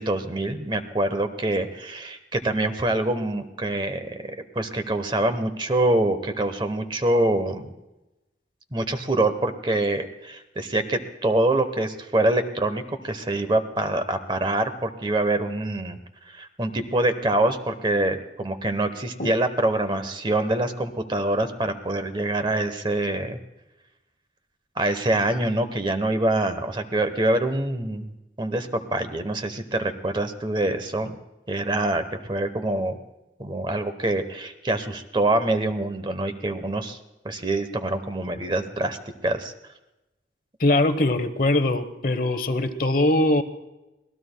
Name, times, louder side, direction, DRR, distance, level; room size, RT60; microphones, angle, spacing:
voice 1, 0.0-7.7 8.7-16.0 16.3-23.4 24.8-28.1 28.4-31.2 31.5-33.0 33.4-37.0 37.2-39.0 39.2-39.5, right 1 dB, 25° right, 9 dB, 0.9 m, -25 dB
voice 2, 40.6-43.4, left 1 dB, 50° left, 10 dB, 1.0 m, -21 dB
26.0 x 18.5 x 2.2 m, 0.98 s
head